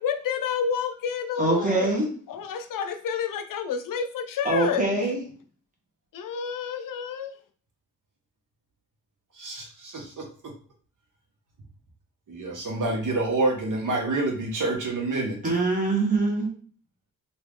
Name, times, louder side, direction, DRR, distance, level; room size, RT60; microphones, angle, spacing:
voice 1, 0.0-1.9 2.3-4.9 6.1-7.3, left 7 dB, 80° left, 7 dB, 0.5 m, -29 dB
voice 2, 1.4-2.1 4.4-5.2 15.4-16.5, right 2 dB, 25° right, -1 dB, 1.3 m, -23 dB
voice 3, 9.3-10.2 12.3-15.6, right 2 dB, 70° right, -1 dB, 1.1 m, -28 dB
2.9 x 2.7 x 3.5 m, 0.43 s
cardioid pair, 90°, 32 cm